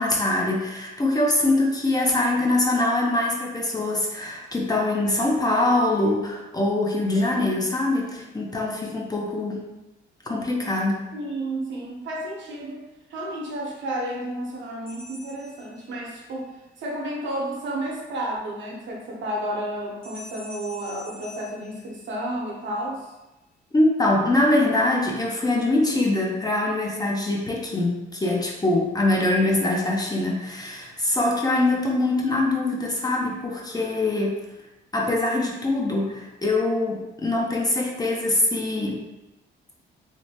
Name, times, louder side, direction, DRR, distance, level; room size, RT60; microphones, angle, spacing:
voice 1, 0.0-9.6 10.3-11.0 23.7-34.3 34.9-39.0, left 2 dB, 20° left, -2 dB, 0.6 m, -23 dB
voice 2, 11.1-16.5 16.8-23.1, right 1 dB, 70° right, -2 dB, 0.8 m, -31 dB
sound 1, 14.9-16.4 20.0-22.5, left 1 dB, 80° left, 1.1 m, -45 dB
3.2 x 2.1 x 2.7 m, 1.0 s
cardioid pair, 90°, 20 cm